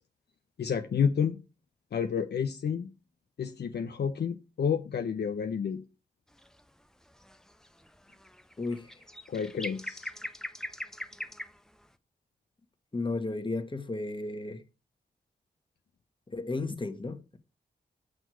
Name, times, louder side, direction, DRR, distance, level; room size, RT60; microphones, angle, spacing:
voice 1, 0.6-1.4 1.9-2.9 3.4-5.8 9.3-10.1, left 7 dB, 65° left, 0.7 m, -30 dB
sound 1, 6.3-6.7 7.0-11.9, equal, 5° left, 0.7 m, -42 dB
voice 2, 8.6-8.9 12.9-14.6 16.3-17.4, left 3 dB, 25° left, 1.4 m, -33 dB
6.3 x 6.2 x 4.5 m
supercardioid pair, 40°, 18 cm